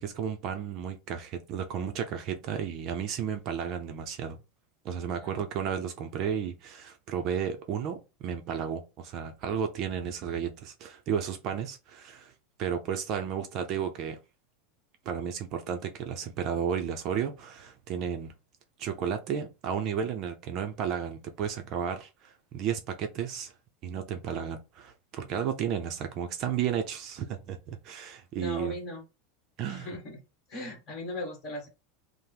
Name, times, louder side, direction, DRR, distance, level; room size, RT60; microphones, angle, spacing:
voice 1, 0.0-4.4 4.8-12.3 12.6-14.2 15.1-18.3 18.8-23.5 23.8-28.8 29.6-29.9, right 8 dB, 35° right, 0.5 m, -33 dB
voice 2, 28.4-29.0 29.6-30.2 30.5-31.7, left 1 dB, 30° left, 1.4 m, -38 dB
5.6 x 2.0 x 3.4 m
supercardioid pair, 165°, 0 cm